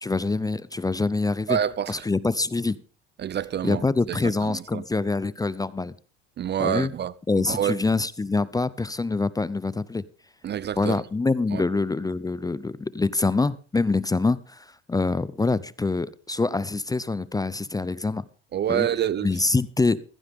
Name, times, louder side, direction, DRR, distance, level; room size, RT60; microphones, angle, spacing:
voice 1, 0.0-1.6 1.9-2.8 3.6-5.9 6.6-6.9 7.3-10.0 10.8-18.2 18.7-18.9 19.2-20.0, left 3 dB, 10° left, 0.6 m, -25 dB
voice 2, 1.5-1.9 3.2-3.8 4.1-4.2 4.7-4.8 6.4-7.1 7.5-7.7 10.4-11.0 11.5-11.6 18.5-19.3, right 10 dB, 35° right, 0.6 m, -26 dB
15.5 x 15.0 x 3.6 m
supercardioid pair, 90°, 31 cm